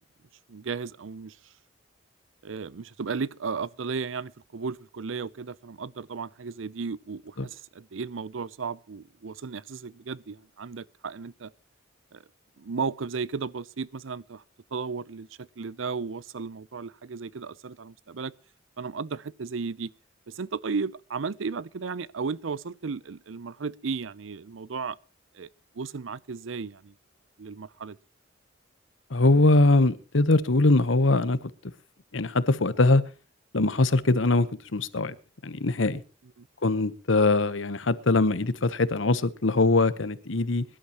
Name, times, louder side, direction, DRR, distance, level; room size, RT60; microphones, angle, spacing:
voice 1, 0.5-1.4 2.4-11.5 12.1-12.2 12.6-14.4 14.7-18.3 18.8-19.9 20.3-25.0 25.3-25.5 25.7-26.9 27.4-28.0 36.4-36.5, right 5 dB, 80° right, 0.6 m, -34 dB
voice 2, 29.1-31.4 32.1-33.0 33.5-35.1 35.4-36.0 36.6-40.6, left 2 dB, 75° left, 1.0 m, -22 dB
23.0 x 11.5 x 3.0 m
head